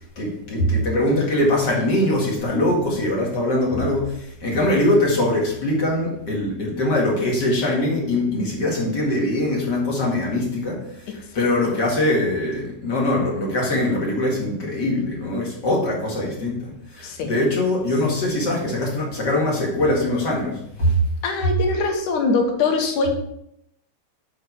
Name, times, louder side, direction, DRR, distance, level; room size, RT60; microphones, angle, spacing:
voice 1, 0.2-21.0, left 1 dB, 35° left, -3 dB, 2.3 m, -22 dB
voice 2, 17.0-17.4 21.2-23.1, left 4 dB, 85° left, 3 dB, 2.7 m, -22 dB
7.8 x 5.0 x 4.6 m, 0.75 s
omnidirectional pair, 3.5 m